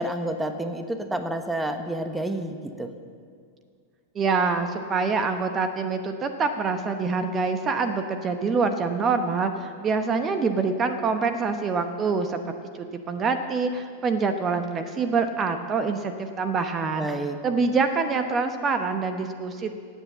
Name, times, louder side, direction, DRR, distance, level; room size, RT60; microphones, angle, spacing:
voice 1, 0.0-2.9 17.0-17.4, right 1 dB, 10° right, 8 dB, 1.1 m, -29 dB
voice 2, 4.1-12.4 12.8-17.1 17.4-19.7, right 4 dB, 30° right, 8 dB, 1.0 m, -25 dB
17.0 x 8.4 x 7.5 m, 2.1 s
hypercardioid pair, 95°, 0 cm